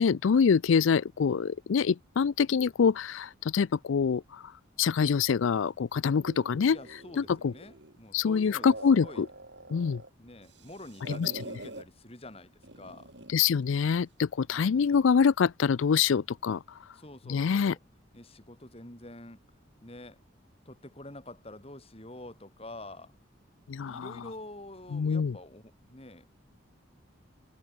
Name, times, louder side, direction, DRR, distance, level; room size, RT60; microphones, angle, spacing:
voice 1, 0.0-6.8 7.2-7.5 8.1-9.3 9.7-10.0 11.2-11.3 13.3-16.9 17.3-17.7 23.7-24.1 24.9-25.3, left 6 dB, 80° left, 0.4 m, -25 dB
sound 1, 6.2-8.0 8.4-10.1 10.4-11.9 12.6-13.4, right 2 dB, 60° right, 4.7 m, -45 dB
voice 2, 6.7-9.3 10.2-13.1 14.5-15.1 16.9-17.8 18.1-19.4 19.8-20.2 20.6-23.1 23.8-26.3, left 1 dB, 30° left, 3.3 m, -47 dB
head